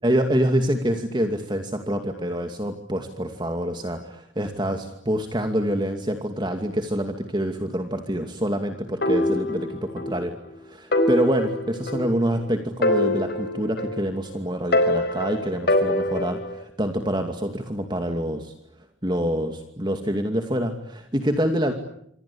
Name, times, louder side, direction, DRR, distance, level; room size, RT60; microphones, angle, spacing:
voice 1, 0.0-10.3 10.6-18.5 19.0-21.7, equal, 25° right, 5 dB, 2.5 m, -26 dB
sound 1, 9.0-10.2 10.5-10.6 10.9-12.4 12.8-14.3 14.7-16.6, left 1 dB, 55° left, 4.4 m, -24 dB
27.0 x 25.5 x 8.7 m, 0.72 s
head